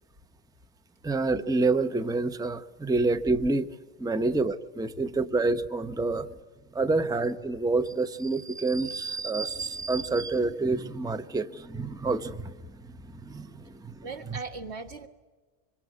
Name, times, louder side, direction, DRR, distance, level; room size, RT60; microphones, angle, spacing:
voice 1, 1.0-3.7 4.0-6.3 6.7-14.4, right 3 dB, 5° right, 11 dB, 0.7 m, -28 dB
voice 2, 14.0-15.1, right 4 dB, 90° right, 6 dB, 2.0 m, -39 dB
25.5 x 24.0 x 9.4 m, 1.3 s
omnidirectional pair, 1.1 m